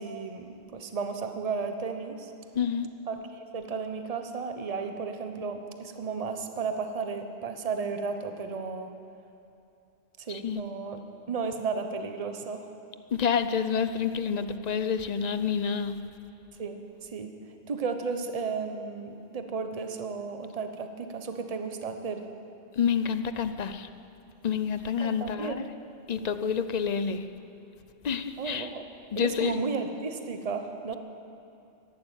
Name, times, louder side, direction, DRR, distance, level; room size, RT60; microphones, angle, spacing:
voice 1, 0.0-2.3 3.1-8.9 10.2-11.0 11.3-12.7 16.6-17.3 17.7-22.2 25.0-25.7 28.4-28.8 29.1-31.0, right 5 dB, 35° right, 6 dB, 1.0 m, -34 dB
voice 2, 2.5-2.9 10.3-10.6 13.1-16.0 22.8-23.9 24.4-25.7 26.1-27.2 28.0-28.7 29.1-29.6, left 7 dB, 45° left, 11 dB, 0.7 m, -28 dB
13.5 x 11.5 x 8.9 m, 2.6 s
omnidirectional pair, 1.1 m